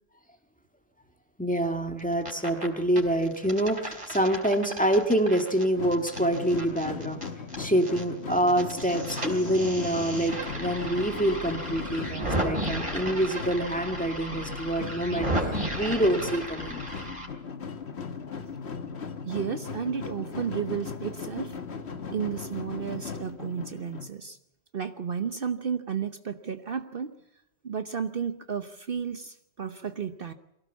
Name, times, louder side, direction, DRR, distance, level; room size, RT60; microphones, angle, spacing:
voice 1, 1.4-7.2 7.6-16.9, right 1 dB, 5° left, 2.0 m, -26 dB
sound 1, 2.0-2.7 3.0-8.0 8.3-17.3, right 1 dB, 25° right, 4.5 m, -34 dB
sound 2, 5.7-24.1, left 5 dB, 70° left, 1.7 m, -38 dB
voice 2, 19.2-21.5 22.1-24.4 24.7-27.1 27.6-30.3, right 7 dB, 55° right, 1.1 m, -32 dB
24.0 x 17.0 x 7.2 m
omnidirectional pair, 1.2 m